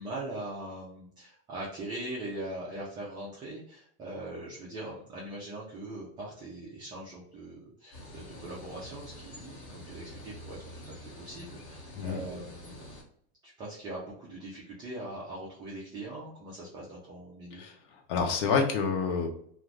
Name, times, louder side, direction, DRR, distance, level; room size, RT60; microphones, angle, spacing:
voice 1, 0.0-10.6 10.8-12.9 13.4-17.6, right 1 dB, 15° right, -5 dB, 0.4 m, -41 dB
sound 1, 7.9-13.0, equal, 45° left, 1.2 m, -46 dB
voice 2, 17.5-19.3, left 5 dB, 60° left, 2 dB, 0.8 m, -28 dB
2.5 x 2.4 x 3.2 m, 0.64 s
supercardioid pair, 160°, 31 cm